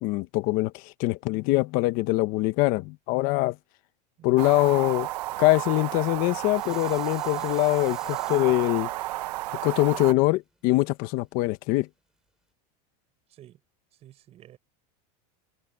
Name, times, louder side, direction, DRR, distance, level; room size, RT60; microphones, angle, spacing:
voice 1, 0.0-3.6 4.2-5.1 5.4-8.9 9.6-11.9, left 20 dB, 45° left, 1.2 m, -23 dB
sound 1, 4.4-10.1, right 17 dB, 75° right, 1.3 m, -32 dB
Dishes pots and pans, 6.1-11.2 11.8-11.9, right 1 dB, 5° right, 7.5 m, -52 dB
voice 2, 14.0-14.6, right 12 dB, 30° right, 5.5 m, -51 dB
supercardioid pair, 155°, 20 cm